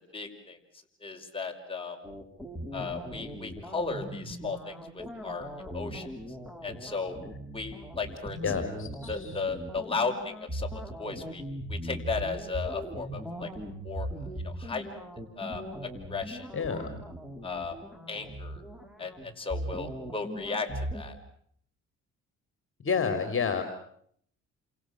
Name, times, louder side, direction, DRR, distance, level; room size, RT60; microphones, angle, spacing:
voice 1, 0.1-0.6 1.0-2.0 2.7-6.1 6.6-7.2 7.5-8.4 9.1-11.4 11.7-13.5 13.8-14.1 14.4-14.9 15.4-16.9 17.4-17.7 18.1-18.6 19.0-21.2, left 4 dB, 20° left, 2 dB, 5.7 m, -35 dB
sound 1, 2.0-21.0, equal, ahead, 5.7 m, -39 dB
voice 2, 8.4-9.4 16.5-17.0 22.8-23.6, left 6 dB, 45° left, 8 dB, 4.0 m, -30 dB
29.5 x 27.5 x 6.6 m, 0.66 s
cardioid pair, 90°, 30 cm